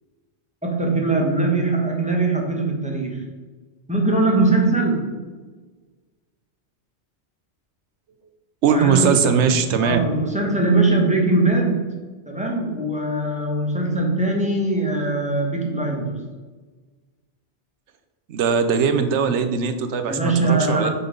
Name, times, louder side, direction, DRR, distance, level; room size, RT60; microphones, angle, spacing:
voice 1, 0.6-3.2 3.9-5.1 8.7-9.3 9.8-11.9 12.3-16.1 20.0-20.9, right 2 dB, 5° right, 0 dB, 1.1 m, -21 dB
voice 2, 8.6-10.0 18.3-20.9, right 6 dB, 85° right, 9 dB, 1.0 m, -20 dB
5.6 x 4.0 x 5.1 m, 1.3 s
omnidirectional pair, 1.1 m